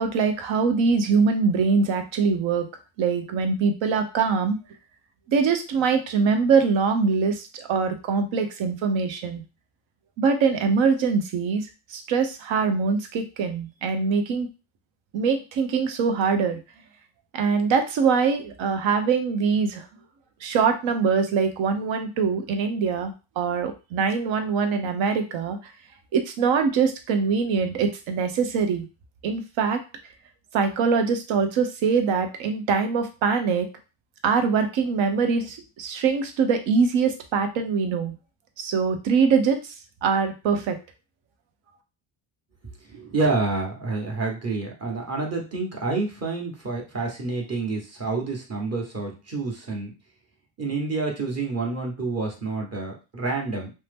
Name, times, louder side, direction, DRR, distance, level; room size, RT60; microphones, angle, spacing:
voice 1, 0.0-2.7 3.0-4.6 5.3-9.4 10.2-14.5 15.1-16.6 17.3-19.8 20.4-25.6 26.1-28.8 29.2-29.8 30.5-33.7 34.2-38.1 38.6-39.7 40.0-40.8, right 5 dB, 65° right, 7 dB, 0.8 m, -23 dB
voice 2, 42.9-49.9 50.6-53.7, right 3 dB, 30° right, 0 dB, 1.1 m, -28 dB
2.7 x 2.1 x 3.4 m, 0.30 s
supercardioid pair, 85°, 50 cm